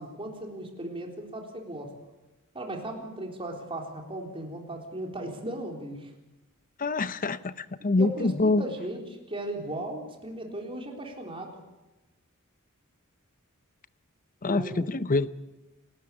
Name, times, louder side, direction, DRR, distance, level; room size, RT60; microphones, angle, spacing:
voice 1, 0.0-1.9 2.5-6.1 7.8-9.0 9.3-11.6 14.5-14.9, right 1 dB, 25° right, 2 dB, 3.8 m, -37 dB
voice 2, 6.8-8.6 14.4-15.3, left 3 dB, 40° left, 15 dB, 0.7 m, -25 dB
28.0 x 13.0 x 8.6 m, 1.0 s
head